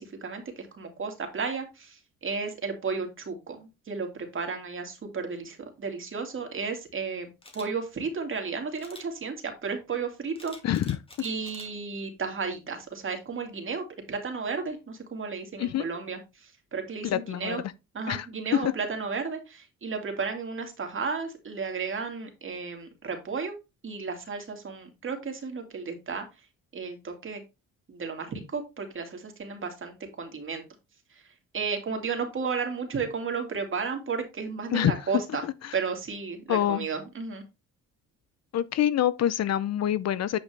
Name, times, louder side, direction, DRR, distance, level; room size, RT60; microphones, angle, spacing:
voice 1, 0.0-7.3 7.5-10.6 11.2-17.6 17.9-23.6 23.8-26.2 26.7-27.4 27.9-30.6 31.1-35.5 35.7-37.4, right 5 dB, 40° right, 2.5 m, -33 dB
Camera, 7.4-7.7 8.8-9.1 10.4-11.7 12.2-12.4, left 2 dB, 20° left, 2.3 m, -47 dB
voice 2, 10.6-11.0 15.6-15.9 17.0-17.6 18.1-18.3 18.5-18.7 34.7-34.9 35.6-35.7 36.5-36.9 38.5-40.4, left 11 dB, 60° left, 0.6 m, -26 dB
9.2 x 5.1 x 3.4 m
cardioid pair, 90°, 30 cm